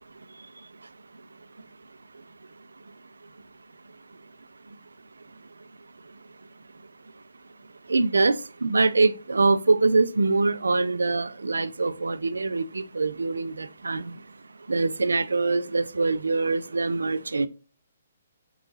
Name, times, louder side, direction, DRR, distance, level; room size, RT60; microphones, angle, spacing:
voice 1, 7.9-14.1 14.7-17.5, right 3 dB, 85° right, 0.3 m, -24 dB
4.6 x 3.0 x 3.8 m
hypercardioid pair, 135°, 0 cm